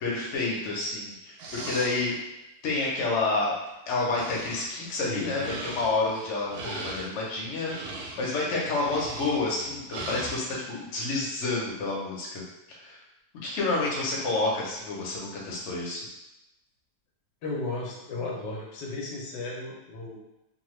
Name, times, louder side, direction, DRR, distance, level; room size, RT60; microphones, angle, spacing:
voice 1, 0.0-2.2 2.6-3.5 3.9-7.7 8.2-12.4 12.7-13.0 13.4-16.0, left 3 dB, 55° left, -4 dB, 0.9 m, -29 dB
sound 1, 1.4-2.0 3.7-3.8 4.1-10.4, right 2 dB, 70° right, 1.0 m, -39 dB
voice 2, 4.9-5.7 17.4-20.2, left 2 dB, 90° left, -2 dB, 1.3 m, -35 dB
2.8 x 2.2 x 3.1 m, 0.93 s
omnidirectional pair, 1.8 m